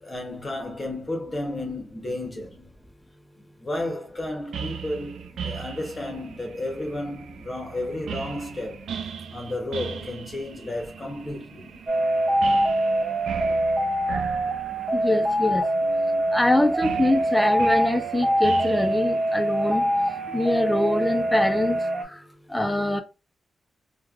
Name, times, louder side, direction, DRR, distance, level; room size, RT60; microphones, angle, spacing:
voice 1, 0.0-2.7 3.6-8.8 9.3-11.7, left 1 dB, 25° left, 0.9 m, -32 dB
sound 1, 4.5-21.8, right 7 dB, 90° right, 0.3 m, -39 dB
sound 2, 11.9-22.0, right 1 dB, 35° right, 0.7 m, -24 dB
voice 2, 14.9-15.7 16.3-19.9 20.3-21.8 22.1-22.2 22.5-23.0, left 1 dB, 5° left, 0.5 m, -23 dB
3.1 x 2.2 x 2.4 m
cardioid pair, 90°, 0 cm